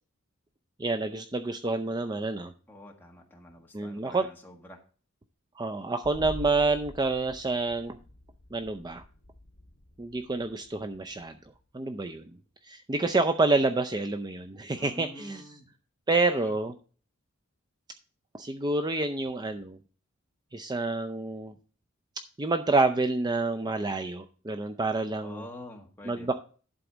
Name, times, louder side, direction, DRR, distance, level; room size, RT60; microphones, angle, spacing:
voice 1, 0.8-2.5 3.7-4.3 5.6-8.0 8.5-9.0 10.0-11.4 11.7-12.3 12.6-15.6 16.1-16.7 18.3-19.8 20.5-21.5 22.4-25.5 26.0-26.4, right 3 dB, 20° right, 6 dB, 0.5 m, -28 dB
voice 2, 2.7-4.8 14.8-15.7 16.4-16.5 25.2-26.4, left 1 dB, 10° left, 0 dB, 1.5 m, -47 dB
sound 1, 6.0-11.6, left 1 dB, 75° left, 2.4 m, -46 dB
11.5 x 4.1 x 6.0 m, 0.39 s
head